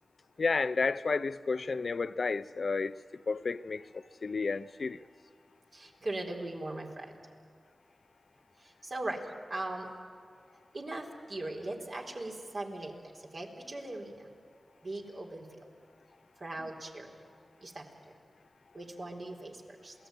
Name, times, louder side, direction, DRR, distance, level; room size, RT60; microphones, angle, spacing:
voice 1, 0.4-2.9 3.3-5.0 16.6-16.7, left 4 dB, 65° left, 0.6 m, -31 dB
voice 2, 5.7-7.1 8.8-9.2 9.5-9.9 10.7-12.9 13.3-14.1 14.8-15.5 16.4-17.1 17.6-17.9 18.7-19.9, right 2 dB, 60° right, 4.1 m, -39 dB
27.5 x 18.0 x 9.1 m
cardioid pair, 45°, 0 cm